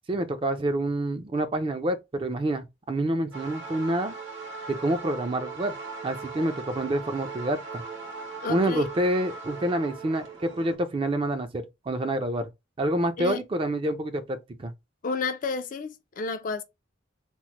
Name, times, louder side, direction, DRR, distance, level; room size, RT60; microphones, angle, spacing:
voice 1, 0.1-4.2 4.7-5.7 6.0-7.8 8.5-12.5 12.8-14.7, right 1 dB, 25° right, 0.4 m, -27 dB
sound 1, 3.3-10.8, right 4 dB, 85° right, 1.4 m, -39 dB
voice 2, 8.4-8.8 13.2-13.4 15.0-16.6, left 4 dB, 45° left, 0.3 m, -31 dB
3.0 x 2.0 x 2.8 m
head